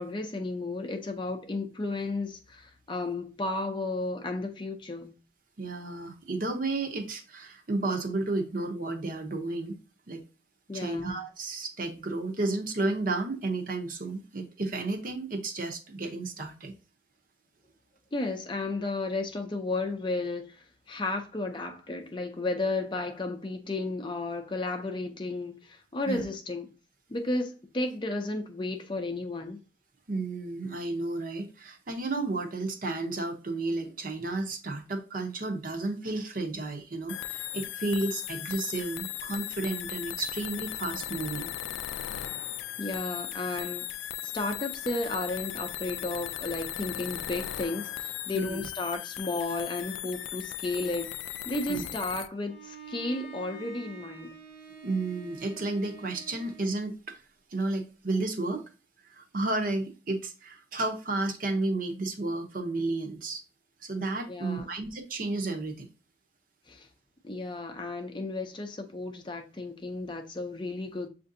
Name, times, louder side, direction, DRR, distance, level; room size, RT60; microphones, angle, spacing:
voice 1, 0.0-5.1 10.7-11.2 18.1-26.7 27.1-29.6 42.8-43.9 44.2-54.3 64.3-64.7 66.7-66.9 67.2-71.1, left 2 dB, 25° left, 0.5 m, -33 dB
voice 2, 5.6-9.8 10.1-10.2 10.7-16.7 26.1-26.2 30.1-41.5 48.3-48.7 51.7-51.9 54.8-57.2 57.5-58.6 59.1-63.4 63.8-65.9, right 2 dB, 45° right, 0.7 m, -32 dB
sound 1, 37.1-52.3, left 12 dB, 90° left, 0.3 m, -37 dB
Bowed string instrument, 52.4-56.8, right 5 dB, 65° right, 1.0 m, -47 dB
7.2 x 2.6 x 2.6 m
head